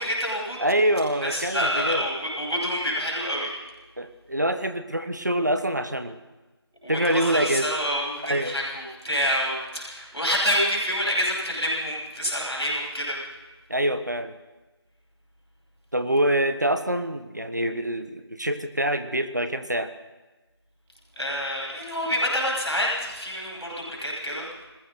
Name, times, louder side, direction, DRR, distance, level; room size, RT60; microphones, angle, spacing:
voice 1, 0.0-0.5 1.2-3.5 6.8-13.2 21.2-24.5, equal, ahead, -21 dB, 4.6 m, -27 dB
voice 2, 0.6-2.1 4.0-6.2 6.9-7.6 8.2-8.5 13.7-14.3 15.9-19.9, right 1 dB, 40° right, 10 dB, 1.3 m, -25 dB
29.0 x 20.5 x 4.4 m, 1.2 s
figure-of-eight pair, 175°, 14 cm